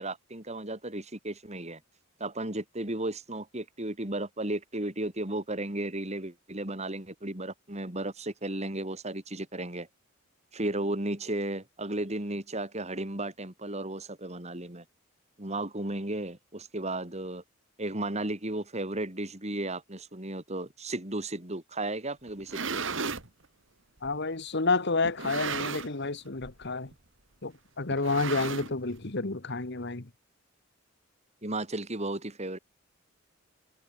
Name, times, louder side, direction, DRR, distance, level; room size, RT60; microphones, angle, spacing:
voice 1, 0.0-1.8 2.2-9.9 10.5-14.8 15.4-17.4 17.8-22.8 31.4-32.6, right 1 dB, 30° right, 3.3 m, -34 dB
sound 1, 22.3-23.3 24.0-24.1 25.0-26.1 26.4-26.7 26.9-27.0 27.9-29.0, right 5 dB, 65° right, 2.7 m, -34 dB
voice 2, 24.0-26.9 27.4-30.1, left 3 dB, 55° left, 1.5 m, -30 dB
head